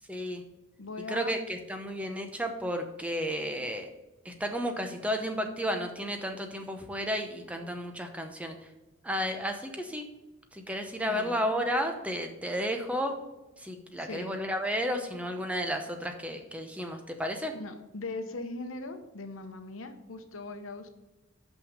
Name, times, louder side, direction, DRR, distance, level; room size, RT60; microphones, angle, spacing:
voice 1, 0.1-0.4 1.1-3.9 4.2-8.6 9.0-10.0 10.5-13.1 13.6-17.5, equal, 5° right, 5 dB, 0.8 m, -32 dB
voice 2, 0.8-1.3 11.0-11.4 14.0-14.3 17.5-20.9, left 2 dB, 80° left, 7 dB, 0.9 m, -40 dB
5.9 x 5.6 x 6.4 m, 1.1 s
head